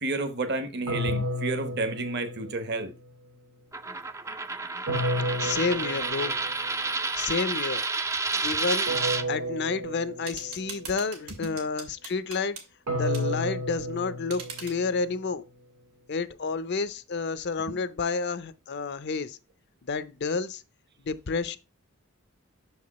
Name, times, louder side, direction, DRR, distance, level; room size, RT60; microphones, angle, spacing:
voice 1, 0.0-2.9 11.4-11.5 17.7-17.8, right 3 dB, 50° right, 1.0 m, -31 dB
sound 1, 0.9-2.9 4.9-6.7 8.9-10.7 12.9-15.1, equal, 70° right, 1.4 m, -32 dB
Coin (dropping), 3.7-9.2, right 3 dB, 15° right, 0.4 m, -30 dB
voice 2, 5.4-6.3 7.2-7.8 8.4-8.9 9.3-12.6 13.0-15.4 16.1-19.4 19.8-20.6 21.0-21.6, left 4 dB, 50° left, 0.5 m, -30 dB
sound 2, 10.3-12.7 13.1-13.3 14.3-14.8, right 5 dB, 90° right, 2.2 m, -42 dB
6.5 x 4.8 x 4.0 m
head